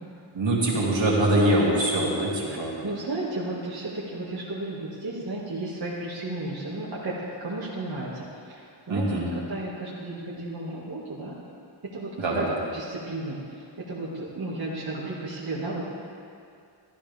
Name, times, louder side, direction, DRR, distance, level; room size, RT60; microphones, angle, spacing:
voice 1, 0.3-2.8 8.9-9.3 12.2-12.6, right 1 dB, 70° right, -5 dB, 2.6 m, -23 dB
voice 2, 2.8-7.2 7.4-11.3 11.9-12.5 12.7-13.4 13.9-15.8, right 2 dB, 50° right, -7 dB, 2.0 m, -33 dB
14.5 x 12.5 x 3.5 m, 2.4 s
wide cardioid pair, 105°, 47 cm